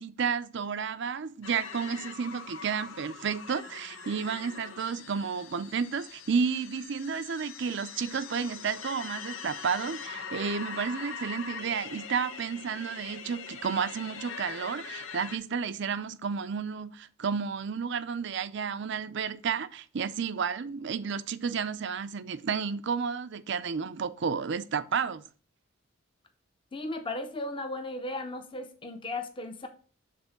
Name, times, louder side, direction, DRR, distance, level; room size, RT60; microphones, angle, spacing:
voice 1, 0.0-25.2, right 6 dB, 60° right, 0.5 m, -32 dB
sound 1, 1.4-15.4, left 6 dB, 85° left, 0.9 m, -42 dB
voice 2, 26.7-29.7, left 2 dB, 25° left, 0.7 m, -36 dB
6.8 x 3.7 x 5.8 m
head